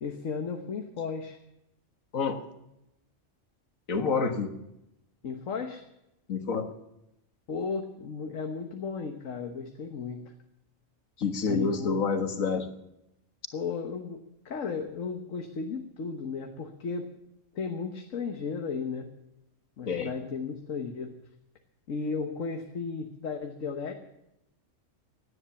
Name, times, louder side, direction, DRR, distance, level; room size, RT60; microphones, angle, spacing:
voice 1, 0.0-1.4 5.2-5.8 7.5-10.3 11.5-11.9 13.5-17.1 17.5-19.1 19.8-21.1 21.9-23.9, left 5 dB, 75° left, 5 dB, 1.6 m, -34 dB
voice 2, 3.9-4.6 6.3-6.7 11.2-12.7 19.9-20.1, left 5 dB, 90° left, 7 dB, 2.0 m, -28 dB
17.0 x 11.0 x 7.1 m, 0.87 s
omnidirectional pair, 1.4 m